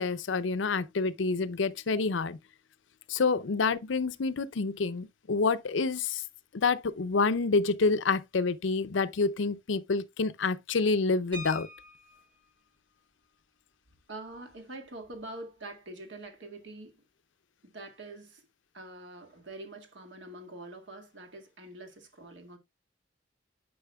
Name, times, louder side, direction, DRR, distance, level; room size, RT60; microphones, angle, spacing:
voice 1, 0.0-2.4 3.1-6.2 6.5-11.7, left 4 dB, 80° left, 0.6 m, -28 dB
sound 1, 11.3-12.4 13.8-14.0 14.3-14.5 14.9-15.2, equal, 25° right, 4.0 m, -45 dB
voice 2, 14.1-17.0 17.6-18.5 18.7-22.6, right 2 dB, 75° right, 1.9 m, -45 dB
10.5 x 5.6 x 2.3 m
head